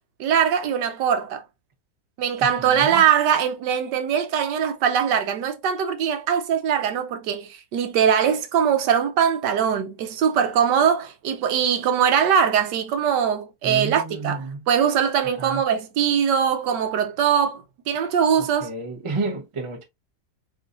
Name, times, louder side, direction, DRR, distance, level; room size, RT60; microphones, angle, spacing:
voice 1, 0.2-1.4 2.2-18.7, right 8 dB, 70° right, 1.2 m, -21 dB
voice 2, 2.6-3.0 13.6-14.7 15.4-15.6 18.4-19.8, right 3 dB, 40° right, 0.4 m, -31 dB
3.9 x 3.6 x 2.5 m
omnidirectional pair, 2.0 m